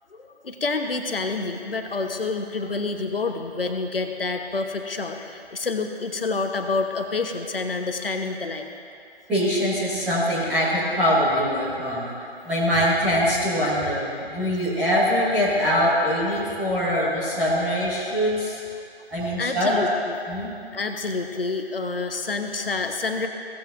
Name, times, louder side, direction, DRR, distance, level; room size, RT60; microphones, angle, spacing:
voice 1, 0.2-8.7 19.4-20.2 20.7-23.3, left 3 dB, 60° left, 5 dB, 1.0 m, -28 dB
voice 2, 9.3-12.1 12.4-18.6 19.1-19.7 20.3-20.5, equal, 5° right, -11 dB, 1.1 m, -23 dB
16.0 x 9.0 x 2.6 m, 2.5 s
figure-of-eight pair, 150°, 32 cm